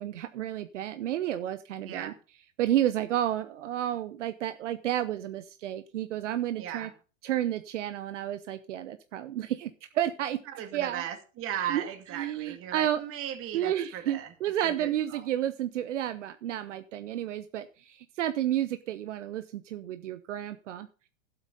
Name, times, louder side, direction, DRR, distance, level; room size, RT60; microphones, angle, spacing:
voice 1, 0.0-2.1 2.6-6.9 7.2-10.4 10.7-11.0 11.7-11.8 12.1-13.0 13.5-20.9, right 12 dB, 70° right, 11 dB, 0.9 m, -31 dB
voice 2, 1.8-2.2 6.6-6.9 10.5-14.3 14.6-15.3, right 10 dB, 35° right, 8 dB, 2.3 m, -37 dB
12.0 x 8.1 x 5.4 m, 0.36 s
hypercardioid pair, 115°, 37 cm